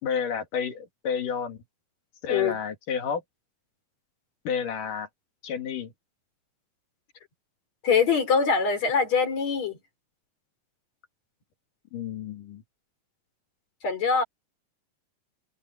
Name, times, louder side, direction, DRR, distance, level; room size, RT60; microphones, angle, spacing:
voice 1, 0.0-1.6 2.2-3.2 4.5-5.1 5.4-5.9 11.9-12.6, left 7 dB, 70° left, 3.8 m, -30 dB
voice 2, 7.8-9.8 13.8-14.2, left 5 dB, 50° left, 5.2 m, -23 dB
omnidirectional pair, 4.0 m